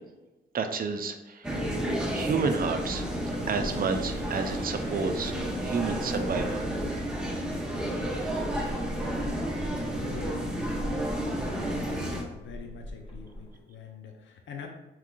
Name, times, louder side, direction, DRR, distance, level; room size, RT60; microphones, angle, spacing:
voice 1, 0.5-1.6 2.1-3.1 3.5-5.3 5.6-6.7, right 5 dB, 45° right, 7 dB, 0.5 m, -30 dB
sound 1, 1.4-12.2, right 1 dB, 5° right, 0.9 m, -31 dB
sound 2, 3.8-13.6, left 1 dB, 25° left, 0.7 m, -43 dB
voice 2, 10.0-10.9 11.5-14.7, left 6 dB, 70° left, 3 dB, 0.6 m, -45 dB
3.6 x 3.0 x 2.3 m, 1.0 s
cardioid pair, 65°, 20 cm